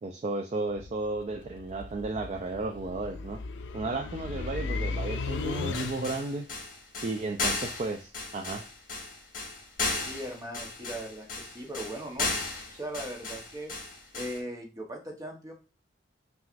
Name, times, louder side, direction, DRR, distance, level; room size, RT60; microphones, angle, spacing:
voice 1, 0.0-3.4 3.7-6.5 7.0-8.7, right 3 dB, 35° right, 4 dB, 0.3 m, -33 dB
sound 1, 0.7-6.4, left 4 dB, 70° left, 0.4 m, -36 dB
sound 2, 5.5-14.4, left 3 dB, 50° left, 1.3 m, -35 dB
voice 2, 10.0-12.3 12.7-13.7 14.1-15.5, right 1 dB, 20° right, 0 dB, 1.0 m, -39 dB
5.8 x 2.4 x 2.5 m, 0.33 s
head